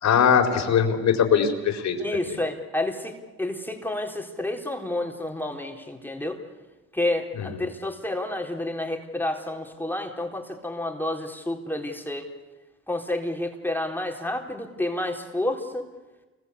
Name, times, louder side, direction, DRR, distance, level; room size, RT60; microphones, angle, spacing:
voice 1, 0.0-2.0 7.4-7.5, left 7 dB, 65° left, 5 dB, 4.3 m, -21 dB
voice 2, 2.0-6.4 6.9-12.3 12.9-15.9, left 1 dB, 5° left, 2 dB, 4.0 m, -30 dB
29.0 x 23.5 x 8.4 m, 1.2 s
cardioid pair, 90°, 30 cm